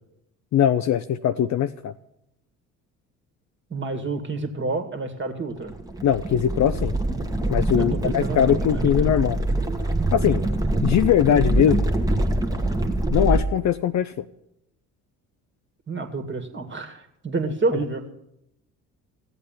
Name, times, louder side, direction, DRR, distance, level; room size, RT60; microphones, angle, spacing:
voice 1, 0.5-1.9 6.0-6.9 7.5-9.4 10.1-10.4 10.8-11.8 13.1-14.2, left 10 dB, 40° left, 11 dB, 0.6 m, -21 dB
voice 2, 3.7-5.7 7.8-9.1 15.9-18.0, right 3 dB, 25° right, 4 dB, 2.0 m, -29 dB
sound 1, 5.7-13.4, right 1 dB, 10° right, 1.4 m, -24 dB
14.5 x 8.1 x 7.2 m, 0.80 s
hypercardioid pair, 60°, 43 cm